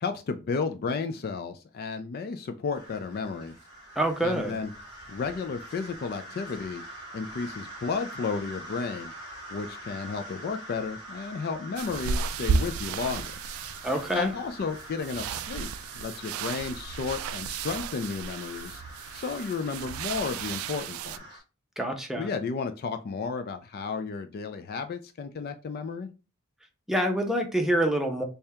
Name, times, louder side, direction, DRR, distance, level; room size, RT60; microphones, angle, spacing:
voice 1, 0.0-3.6 4.2-4.7 5.1-6.8 7.1-9.1 9.5-13.3 14.1-15.7 15.9-18.8 19.1-21.4 22.2-26.1, left 5 dB, 45° left, 8 dB, 0.3 m, -33 dB
sound 1, 2.7-21.4, right 1 dB, 70° left, 1.7 m, -45 dB
voice 2, 4.0-4.5 13.8-14.3 21.8-22.3 26.9-28.2, right 1 dB, ahead, 3 dB, 0.6 m, -26 dB
sound 2, 11.8-21.2, right 5 dB, 80° right, 0.3 m, -34 dB
3.3 x 2.8 x 3.4 m, 0.31 s
head